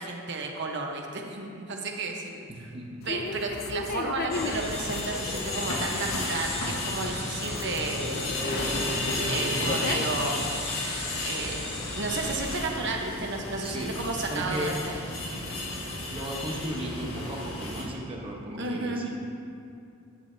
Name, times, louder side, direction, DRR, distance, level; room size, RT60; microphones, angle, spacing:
voice 1, 0.0-2.4 3.1-8.4 9.3-10.4 11.2-11.6 11.9-14.9 18.6-19.0, right 3 dB, 60° right, 1 dB, 1.0 m, -32 dB
voice 2, 2.5-3.0 3.5-3.7 13.6-13.9 14.3-14.7 16.1-19.2, equal, 25° right, -1 dB, 1.1 m, -36 dB
sound 1, 3.0-10.5, left 3 dB, 50° left, 0.4 m, -36 dB
sound 2, 4.3-17.8, left 1 dB, 85° left, 1.5 m, -32 dB
11.0 x 9.3 x 2.8 m, 2.5 s
head